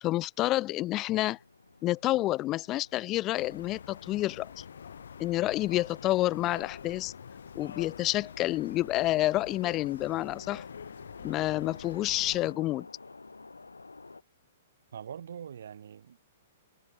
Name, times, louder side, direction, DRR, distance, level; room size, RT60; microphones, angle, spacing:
voice 1, 0.0-1.4 1.8-4.6 5.2-7.1 7.6-10.6 11.2-12.9, left 16 dB, 30° left, 0.6 m, -29 dB
sound 1, 1.2-14.2, left 3 dB, 80° left, 4.4 m, -52 dB
sound 2, 3.4-12.5, left 7 dB, 65° left, 4.7 m, -46 dB
voice 2, 14.9-16.2, right 8 dB, 60° right, 3.5 m, -43 dB
figure-of-eight pair, 110°, 0 cm